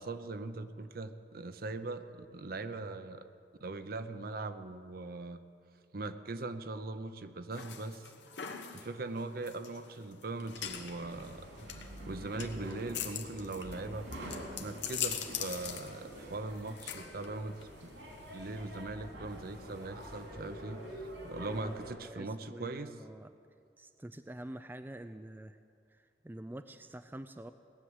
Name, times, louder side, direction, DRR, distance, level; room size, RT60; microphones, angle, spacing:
voice 1, 0.0-3.3 3.6-5.4 5.9-8.1 8.7-11.7 12.1-14.1 14.6-17.6 18.3-22.9, right 2 dB, 55° right, 10 dB, 0.7 m, -40 dB
sound 1, 7.5-18.8, left 8 dB, 90° left, 1.2 m, -43 dB
sound 2, 10.4-21.9, equal, 80° right, 3.4 m, -47 dB
voice 2, 21.5-23.3 23.8-25.6 25.9-27.5, right 1 dB, 10° right, 9 dB, 0.4 m, -47 dB
18.0 x 7.5 x 9.6 m, 2.3 s
head